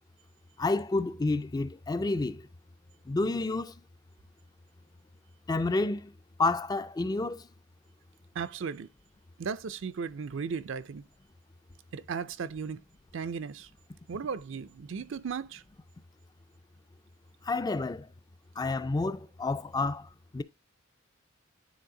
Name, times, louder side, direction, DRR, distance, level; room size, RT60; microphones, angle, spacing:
voice 1, 0.6-2.5 3.1-3.7 5.5-6.1 6.4-7.5 17.4-18.1 18.6-20.4, left 3 dB, 20° left, 0.3 m, -29 dB
voice 2, 8.3-8.9 9.4-11.0 11.9-12.8 13.1-13.7 14.1-15.6, right 6 dB, 60° right, 0.4 m, -36 dB
9.5 x 3.9 x 3.7 m
head